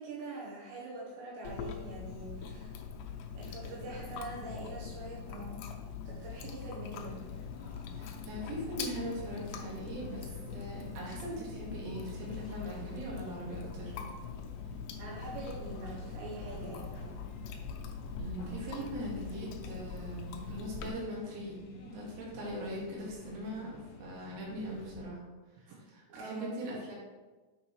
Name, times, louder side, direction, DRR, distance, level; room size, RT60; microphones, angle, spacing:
voice 1, 0.0-2.8 3.3-5.6 6.1-7.2 15.0-17.0 25.7-25.8 26.1-26.6, right 2 dB, 75° right, -5 dB, 2.9 m, -44 dB
Chewing mastication, 1.4-20.9, left 6 dB, 90° left, 2.4 m, -43 dB
sound 1, 7.0-25.0, left 1 dB, 70° left, 2.3 m, -50 dB
voice 2, 8.0-13.9 18.2-25.2 25.9-26.9, equal, 50° right, -5 dB, 2.0 m, -40 dB
7.1 x 6.4 x 3.1 m, 1.3 s
omnidirectional pair, 5.7 m